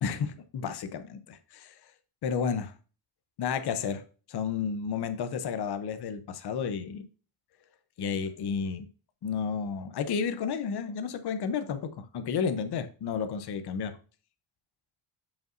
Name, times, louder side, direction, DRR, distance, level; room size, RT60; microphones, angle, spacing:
voice 1, 0.0-1.7 2.2-2.7 3.4-4.0 4.3-7.1 8.0-8.9 9.2-13.9, left 6 dB, 50° left, 10 dB, 0.7 m, -32 dB
7.8 x 5.2 x 2.5 m, 0.36 s
wide cardioid pair, 175°, 50 cm